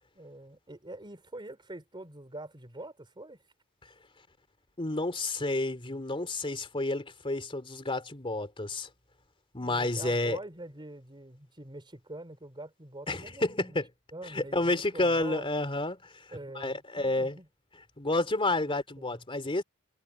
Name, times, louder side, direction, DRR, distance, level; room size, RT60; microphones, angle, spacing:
voice 1, 0.1-3.4 9.6-13.8 14.1-15.5 16.3-17.5 18.6-19.2, right 1 dB, 20° right, 4.1 m, -45 dB
voice 2, 4.8-8.9 9.5-10.4 13.1-13.9 14.3-17.4 18.0-19.6, left 2 dB, 25° left, 3.0 m, -30 dB
head